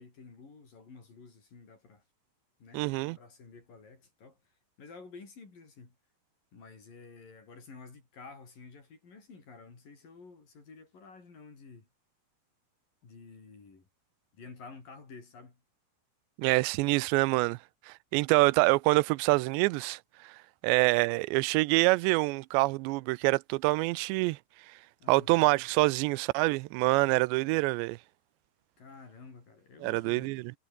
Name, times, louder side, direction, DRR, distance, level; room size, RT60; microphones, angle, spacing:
voice 1, 0.0-2.0 2.6-2.8 3.2-4.4 4.8-6.0 6.5-11.9 13.0-13.9 14.4-15.6 25.0-25.5 28.8-30.5, left 4 dB, 50° left, 7.4 m, -51 dB
voice 2, 2.7-3.2 16.4-17.6 17.9-20.4 20.6-24.4 25.1-28.0 29.8-30.5, right 23 dB, 85° right, 2.9 m, -26 dB
omnidirectional pair, 5.0 m